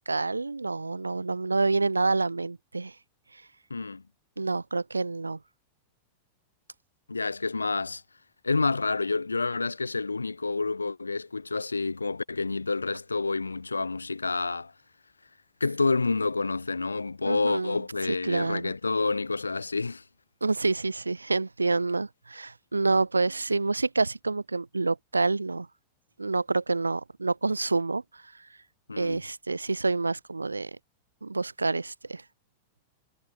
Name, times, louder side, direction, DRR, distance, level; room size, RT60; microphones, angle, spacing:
voice 1, 0.1-2.9 4.4-5.4 17.2-18.7 20.4-25.7 26.2-28.0 29.0-30.8 31.2-32.2, right 3 dB, 90° right, 0.8 m, -28 dB
voice 2, 3.7-4.0 7.1-8.0 8.4-14.7 15.6-20.0 28.9-29.2, left 3 dB, 85° left, 0.7 m, -28 dB
figure-of-eight pair, 95°, 0 cm